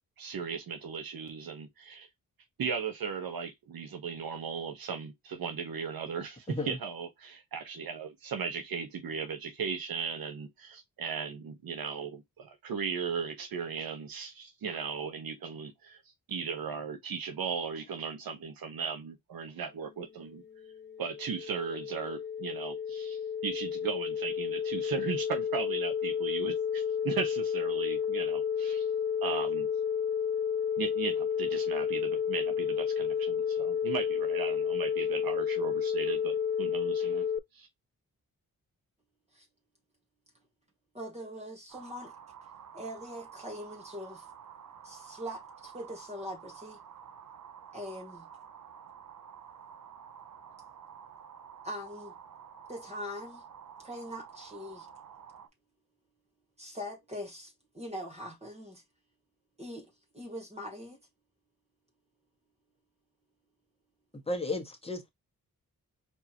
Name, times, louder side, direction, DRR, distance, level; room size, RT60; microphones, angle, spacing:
voice 1, 0.2-2.1 2.6-16.0 16.3-20.4 21.0-28.9 29.2-29.7 30.8-37.3 37.5-37.7, right 6 dB, 85° right, 1.2 m, -37 dB
sound 1, 20.4-37.4, left 7 dB, 35° left, 0.5 m, -31 dB
voice 2, 40.9-42.1 42.7-44.2 44.8-46.8 47.7-48.3 51.6-52.1 52.7-53.4 53.8-54.9 56.6-58.8 59.6-59.8 60.1-61.0, equal, 20° right, 1.7 m, -42 dB
sound 2, 41.7-55.5, right 8 dB, 60° right, 0.8 m, -50 dB
voice 3, 64.3-65.1, left 2 dB, 15° left, 1.5 m, -33 dB
4.5 x 2.9 x 2.9 m
cardioid pair, 65°, 34 cm